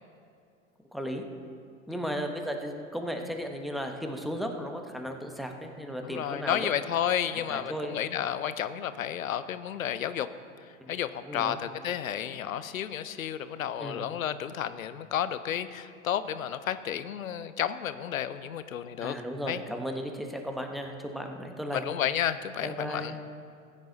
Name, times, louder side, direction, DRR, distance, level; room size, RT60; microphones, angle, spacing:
voice 1, 0.9-1.2 1.9-6.7 7.5-8.0 10.8-10.9 11.2-11.6 13.8-14.0 19.0-21.8 22.6-23.2, equal, ahead, 3 dB, 1.1 m, -35 dB
voice 2, 6.0-10.3 10.9-19.2 19.5-19.6 21.7-23.2, left 10 dB, 90° left, 13 dB, 0.7 m, -31 dB
15.0 x 9.7 x 4.0 m, 2.4 s
hypercardioid pair, 95°, 40 cm